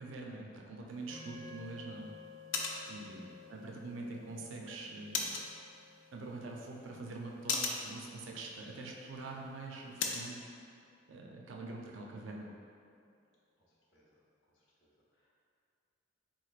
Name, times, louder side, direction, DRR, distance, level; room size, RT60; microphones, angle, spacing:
voice 1, 0.0-2.1 2.9-3.2 3.5-5.3 6.1-10.4 11.1-12.5, right 2 dB, 80° right, 0 dB, 0.4 m, -44 dB
sound 1, 0.9-10.3, left 4 dB, 85° left, 0.4 m, -42 dB
sound 2, 1.1-9.5, left 4 dB, 10° left, 0.5 m, -56 dB
voice 2, 2.9-3.5 13.6-13.7 13.9-14.2 14.5-15.3, equal, 65° left, -7 dB, 0.7 m, -70 dB
3.8 x 3.1 x 2.4 m, 2.4 s
head